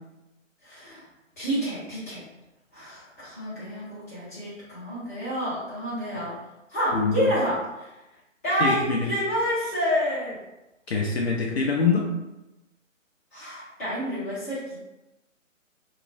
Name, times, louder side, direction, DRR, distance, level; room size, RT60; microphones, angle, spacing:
voice 1, 0.6-1.1 1.4-2.2 2.7-6.4 6.7-7.9 8.4-10.4 13.3-14.8, equal, 10° left, -12 dB, 0.7 m, -29 dB
voice 2, 6.9-7.3 8.6-9.1 10.9-12.1, left 4 dB, 55° left, -2 dB, 0.5 m, -24 dB
2.4 x 2.0 x 3.7 m, 0.97 s
figure-of-eight pair, 145°, 40 cm